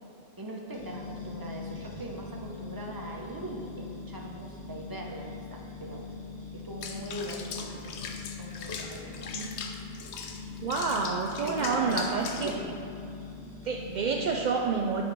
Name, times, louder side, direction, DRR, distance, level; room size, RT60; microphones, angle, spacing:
voice 1, 0.4-6.0 6.5-8.0 8.4-9.3 11.4-12.8, right 1 dB, 20° right, -1 dB, 0.8 m, -40 dB
sound 1, 0.7-14.5, left 4 dB, 20° left, 1.8 m, -42 dB
Water / Bathtub (filling or washing), 6.8-12.6, left 5 dB, 70° left, 0.9 m, -40 dB
voice 2, 10.6-12.5 13.6-15.0, right 5 dB, 60° right, 1 dB, 0.4 m, -29 dB
10.5 x 5.3 x 4.1 m, 2.6 s
omnidirectional pair, 1.2 m